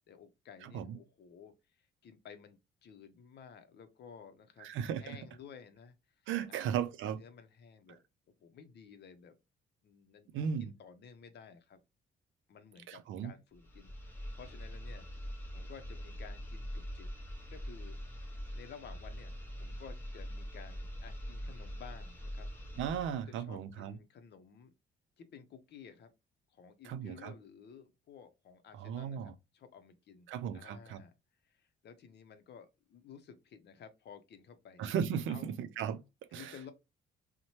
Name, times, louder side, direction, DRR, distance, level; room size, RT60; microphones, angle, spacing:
voice 1, 0.1-4.7 5.0-6.9 7.2-8.0 8.4-9.4 9.8-11.8 12.5-17.1 17.5-18.0 18.5-19.3 19.6-22.5 23.1-24.7 25.2-26.1 26.5-30.3 30.5-31.1 31.4-34.8 35.3-35.5 36.3-36.7, left 7 dB, 60° left, 0.6 m, -54 dB
voice 2, 0.6-1.0 4.6-5.2 6.3-7.2 10.3-10.7 12.9-13.3 22.8-23.9 26.8-27.3 28.7-29.3 30.3-31.0 34.8-36.0 36.3-36.5, right 8 dB, 80° right, 0.4 m, -36 dB
sound 1, 13.5-23.2, equal, 10° left, 0.8 m, -43 dB
2.7 x 2.1 x 3.0 m
cardioid pair, 90°, 20 cm